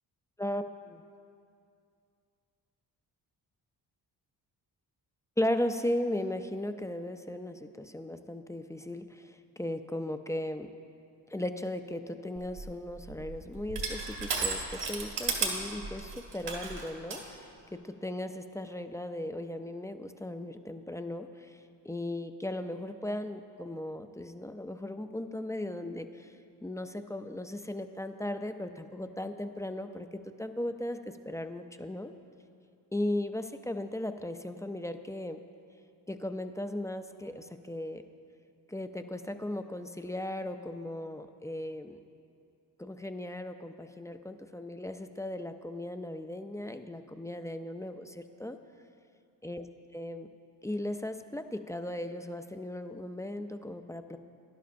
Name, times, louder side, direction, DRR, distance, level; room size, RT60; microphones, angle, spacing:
voice 1, 5.4-10.7 11.3-26.3 26.6-32.1 32.9-35.4 36.1-38.0 38.7-42.0 42.8-48.6 49.4-49.7 49.9-50.3 50.6-54.2, left 1 dB, 10° left, 8 dB, 0.3 m, -37 dB
Crushing, 12.4-17.2, right 4 dB, 75° right, 2.0 m, -35 dB
17.5 x 11.5 x 2.5 m, 2.4 s
cardioid pair, 105°, 41 cm